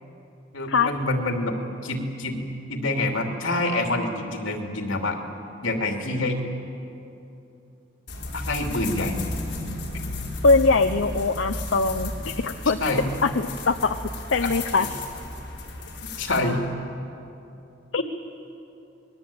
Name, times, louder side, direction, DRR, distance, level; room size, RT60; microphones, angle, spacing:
voice 1, 0.5-2.4 2.7-5.2 5.6-6.4 8.3-9.2 12.8-13.0 13.4-13.5 14.4-14.5 16.2-16.6 18.0-18.1, left 2 dB, 90° left, 3 dB, 2.9 m, -26 dB
sound 1, 8.1-16.4, left 2 dB, 60° left, 4.4 m, -34 dB
voice 2, 10.4-12.8 13.2-14.0 14.3-14.9 17.9-18.0, left 4 dB, 75° left, 7 dB, 0.8 m, -22 dB
27.5 x 20.5 x 8.7 m, 2.8 s
head